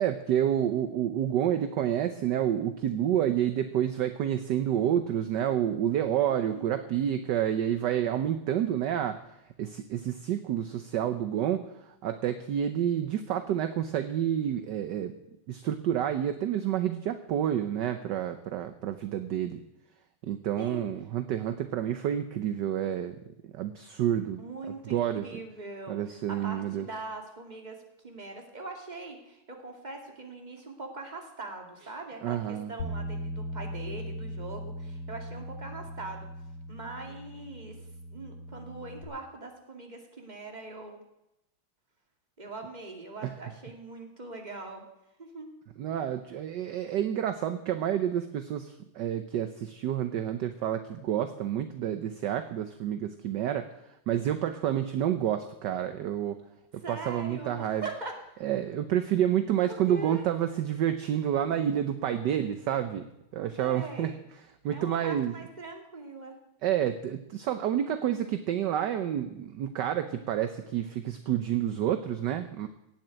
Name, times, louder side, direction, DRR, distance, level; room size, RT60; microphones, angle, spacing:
voice 1, 0.0-9.2 9.6-15.1 15.5-19.6 20.2-23.2 23.4-24.4 24.9-25.4 25.9-26.9 32.2-32.7 43.2-43.3 45.8-53.7 54.1-56.4 56.7-57.9 58.4-64.2 64.6-65.4 66.6-72.7, right 10 dB, 65° right, 10 dB, 1.2 m, -29 dB
voice 2, 6.3-6.7 20.6-20.8 24.4-26.0 26.3-36.3 36.7-37.8 38.1-41.0 42.4-44.8 45.2-45.5 56.8-58.4 59.6-60.2 63.6-64.2 64.7-66.4, right 3 dB, 20° right, 3 dB, 2.3 m, -41 dB
Bass guitar, 32.8-39.0, equal, 90° left, 3.1 m, -39 dB
17.0 x 7.6 x 9.1 m, 0.87 s
omnidirectional pair, 2.4 m